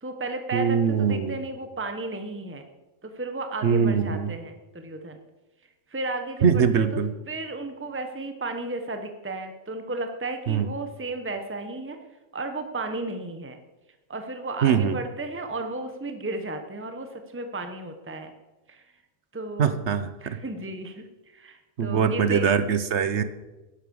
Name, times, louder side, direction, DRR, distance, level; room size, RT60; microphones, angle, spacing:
voice 1, 0.0-2.7 3.0-5.2 5.9-7.0 7.3-12.0 12.3-13.6 14.1-18.3 18.7-18.9 19.3-19.8 20.2-22.5, right 2 dB, 10° right, 6 dB, 1.2 m, -34 dB
voice 2, 0.5-1.4 3.6-4.3 6.4-7.1 10.5-10.6 14.6-15.0 19.6-20.4 21.8-23.2, right 6 dB, 60° right, 12 dB, 1.3 m, -22 dB
12.0 x 11.0 x 7.1 m, 1.1 s
omnidirectional pair, 1.3 m